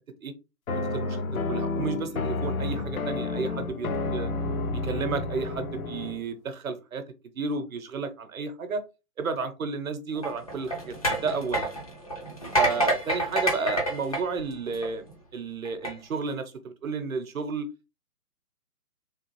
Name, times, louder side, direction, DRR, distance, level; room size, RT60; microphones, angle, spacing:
sound 1, 0.7-6.2, left 3 dB, 65° left, 0.7 m, -30 dB
voice 1, 0.7-1.2 1.5-4.3 4.7-7.0 7.4-8.8 9.2-11.7 12.5-15.0 15.3-17.7, right 4 dB, 60° right, 9 dB, 0.8 m, -32 dB
sound 2, 10.2-15.1 15.7-15.9, right 1 dB, 25° left, 0.5 m, -28 dB
3.3 x 2.5 x 3.1 m, 0.27 s
figure-of-eight pair, 135°, 46 cm